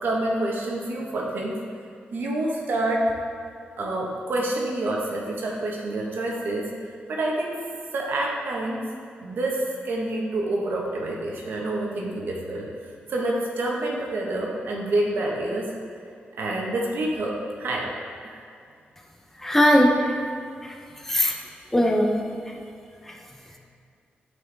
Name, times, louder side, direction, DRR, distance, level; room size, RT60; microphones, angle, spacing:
voice 1, 0.0-1.6 2.1-3.2 3.8-6.7 7.1-7.6 7.9-8.8 9.2-15.7 16.4-17.3 17.6-17.9 18.2-18.4, right 1 dB, 70° right, -2 dB, 1.1 m, -27 dB
voice 2, 19.4-20.2 20.6-20.8 21.0-21.4 21.7-22.2 22.5-22.6 23.1-23.2, equal, 10° left, 1 dB, 0.7 m, -20 dB
9.5 x 4.5 x 3.4 m, 2.3 s
cardioid pair, 95°, 4 cm